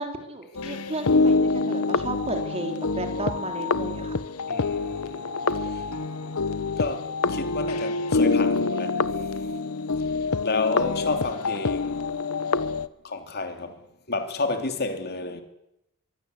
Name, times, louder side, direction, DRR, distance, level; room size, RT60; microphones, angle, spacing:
voice 1, 0.0-4.2, right 2 dB, 30° right, 3.5 m, -33 dB
sound 1, 0.6-12.9, left 3 dB, 85° left, 1.0 m, -26 dB
voice 2, 4.5-5.2 5.6-5.8 6.8-9.1 10.4-12.0 13.0-13.8 14.1-15.4, left 3 dB, 50° left, 3.1 m, -30 dB
24.0 x 22.5 x 8.3 m
head